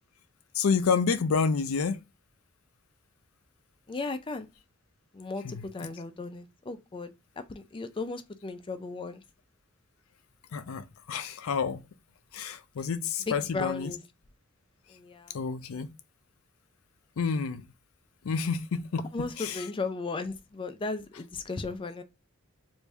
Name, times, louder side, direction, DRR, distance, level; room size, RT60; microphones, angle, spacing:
voice 1, 0.5-2.0 5.4-5.6 10.5-11.8 12.3-13.9 15.3-15.9 17.2-17.6 18.2-19.1 19.4-19.6, left 5 dB, 85° left, 0.5 m, -29 dB
voice 2, 3.9-4.5 5.1-9.2 13.3-14.0 14.9-15.4 19.1-22.0, left 3 dB, 25° left, 0.4 m, -36 dB
3.4 x 2.6 x 3.2 m
head